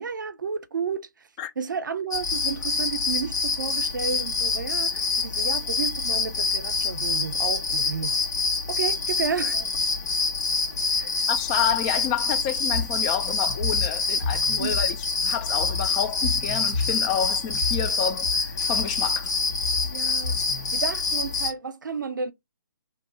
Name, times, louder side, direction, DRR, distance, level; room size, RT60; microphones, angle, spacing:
voice 1, 0.0-1.3 1.6-8.2 8.7-9.7 11.0-11.2 14.6-14.8 19.8-22.3, right 6 dB, 80° right, 0.6 m, -32 dB
sound 1, 2.1-21.5, left 4 dB, 60° left, 1.4 m, -26 dB
voice 2, 11.3-15.0 15.2-19.3, left 9 dB, 20° left, 0.3 m, -29 dB
sound 2, 12.7-20.7, left 3 dB, 80° left, 1.2 m, -31 dB
2.7 x 2.1 x 3.8 m
hypercardioid pair, 145°, 10 cm